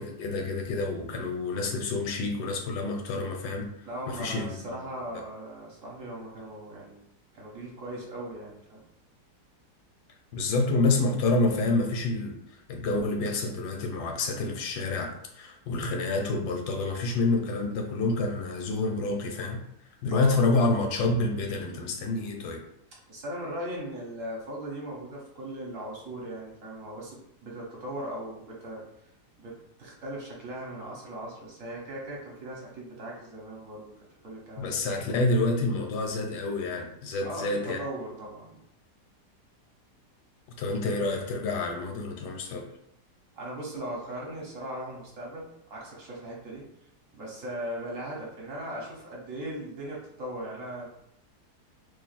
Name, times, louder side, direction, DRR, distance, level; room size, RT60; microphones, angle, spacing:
voice 1, 0.0-3.7 4.1-4.8 10.3-12.4 12.7-19.6 20.0-22.6 34.6-37.8 40.6-42.7, left 2 dB, 80° left, 3 dB, 1.3 m, -28 dB
voice 2, 3.8-7.0 7.3-8.8 20.1-20.5 23.1-28.8 29.4-33.9 34.2-34.8 37.2-38.6 43.3-46.7 47.1-50.9, right 1 dB, 55° right, -3 dB, 1.2 m, -38 dB
3.0 x 2.5 x 4.0 m, 0.75 s
omnidirectional pair, 1.8 m